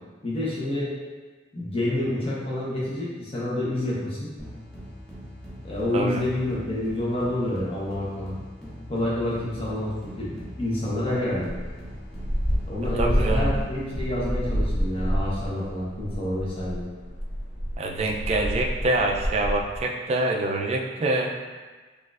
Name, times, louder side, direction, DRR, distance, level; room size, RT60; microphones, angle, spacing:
voice 1, 0.2-0.9 1.5-4.3 5.6-8.3 8.9-11.5 12.7-16.8, left 1 dB, 35° left, -7 dB, 0.8 m, -28 dB
sound 1, 4.4-15.9, equal, 5° left, 0.7 m, -42 dB
sound 2, 11.3-19.8, equal, 65° left, 0.6 m, -28 dB
voice 2, 13.0-13.5 17.8-21.3, right 2 dB, 35° right, 1 dB, 0.3 m, -25 dB
4.2 x 2.4 x 2.4 m, 1.4 s
head